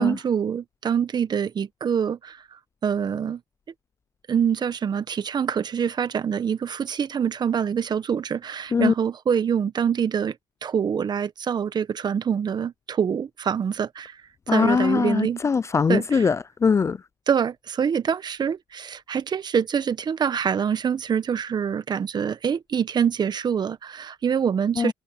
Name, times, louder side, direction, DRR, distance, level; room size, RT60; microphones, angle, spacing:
voice 1, 0.0-3.4 4.3-10.4 10.6-14.2 14.5-15.4 15.9-16.3 17.3-24.9, right 7 dB, 40° right, 1.4 m, -25 dB
voice 2, 14.5-17.0 24.8-24.9, left 5 dB, 25° left, 0.4 m, -21 dB
supercardioid pair, 80°, 11 cm